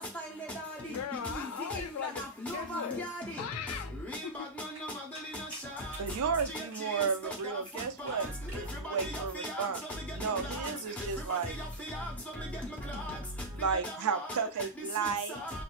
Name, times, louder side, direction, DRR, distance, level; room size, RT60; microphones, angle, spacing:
voice 1, 0.8-2.2 2.5-3.0 3.4-3.9 4.2-4.5, left 7 dB, 85° left, 0.4 m, -38 dB
voice 2, 2.0-3.4 4.1-4.9 5.3-5.9 6.5-6.6 7.2-7.5 8.0-8.3 8.5-8.6 9.0-9.7 10.2-10.7 11.0-12.1 12.4-12.5 12.8-13.2 13.8-14.4 15.0-15.6, left 1 dB, 5° left, 0.9 m, -38 dB
sound 1, 4.7-11.9, right 2 dB, 60° right, 1.3 m, -53 dB
voice 3, 6.0-9.8 10.1-11.6 13.5-15.4, right 6 dB, 85° right, 0.4 m, -33 dB
5.0 x 2.2 x 2.4 m
head